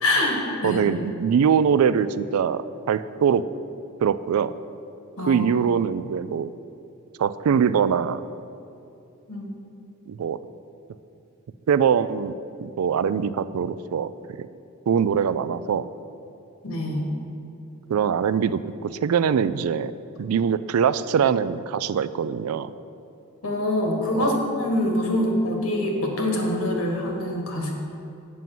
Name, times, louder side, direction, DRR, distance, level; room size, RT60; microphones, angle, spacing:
voice 1, 0.0-0.8 5.2-5.4 9.3-9.6 16.6-17.1 23.4-27.7, left 1 dB, 80° left, 1 dB, 1.6 m, -25 dB
voice 2, 0.6-3.4 4.0-4.5 5.2-6.5 7.2-8.2 10.1-10.4 11.7-12.3 12.6-14.1 14.4-14.5 14.9-15.9 17.9-19.9 20.2-22.7 24.2-24.4, right 7 dB, 85° right, 15 dB, 0.3 m, -23 dB
7.6 x 5.4 x 7.6 m, 2.7 s
head